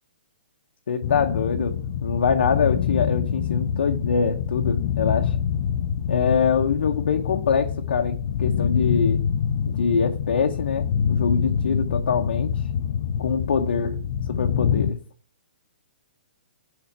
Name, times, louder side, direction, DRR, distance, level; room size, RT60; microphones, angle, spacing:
voice 1, 0.9-5.4 6.1-9.3 9.7-12.6 13.2-14.0 14.3-15.0, left 6 dB, 85° left, 0.7 m, -24 dB
sound 1, 1.0-14.9, left 8 dB, 50° left, 0.4 m, -26 dB
5.9 x 4.0 x 5.3 m
hypercardioid pair, 160°, 6 cm